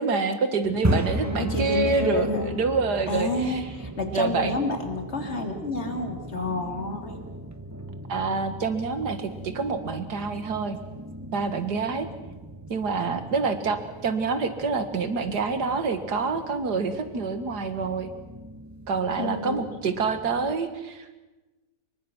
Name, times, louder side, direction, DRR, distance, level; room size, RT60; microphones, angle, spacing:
voice 1, 0.0-3.6 4.1-4.6 8.1-10.8 11.3-12.1 12.7-18.1 18.9-21.2, right 4 dB, 75° right, 9 dB, 2.3 m, -27 dB
sound 1, 0.6-20.5, right 1 dB, 10° right, 1.1 m, -36 dB
voice 2, 1.2-2.6 3.1-7.2 19.2-19.6, left 2 dB, 40° left, 5 dB, 3.0 m, -29 dB
25.5 x 23.0 x 6.2 m, 1.1 s
omnidirectional pair, 1.7 m